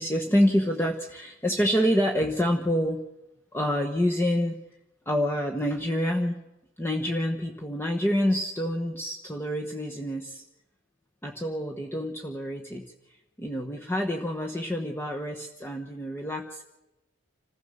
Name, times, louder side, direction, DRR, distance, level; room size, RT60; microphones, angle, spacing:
voice 1, 0.0-3.0 3.5-4.6 5.1-6.4 6.8-10.4 11.2-12.9 13.4-16.6, equal, 10° left, 1 dB, 1.2 m, -27 dB
27.0 x 15.5 x 6.9 m, 0.97 s
head